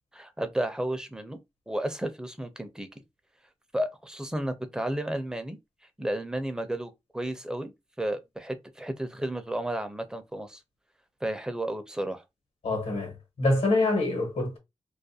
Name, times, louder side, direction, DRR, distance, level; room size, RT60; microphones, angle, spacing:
voice 1, 0.1-1.4 1.7-2.9 3.7-5.6 6.0-7.7 8.0-10.6 11.2-12.2, right 1 dB, 5° right, 0.4 m, -32 dB
voice 2, 12.6-14.6, left 2 dB, 90° left, 1.1 m, -26 dB
2.4 x 2.1 x 2.6 m
wide cardioid pair, 90°, 11 cm